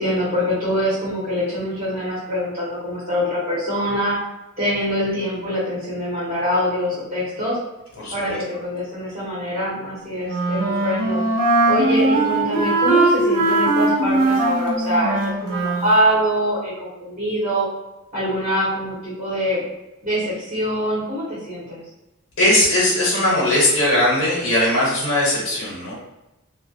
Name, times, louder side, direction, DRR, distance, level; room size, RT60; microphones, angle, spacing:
voice 1, 0.0-4.2 4.6-7.6 8.1-11.2 11.7-17.7 18.1-19.6 20.0-21.8, equal, 35° right, -10 dB, 0.9 m, -24 dB
voice 2, 8.0-8.4 22.4-25.9, left 1 dB, 75° left, -6 dB, 0.8 m, -19 dB
Wind instrument woodwind instrument, 10.2-15.9, right 2 dB, 85° right, 0.6 m, -20 dB
2.2 x 2.1 x 2.6 m, 0.98 s
head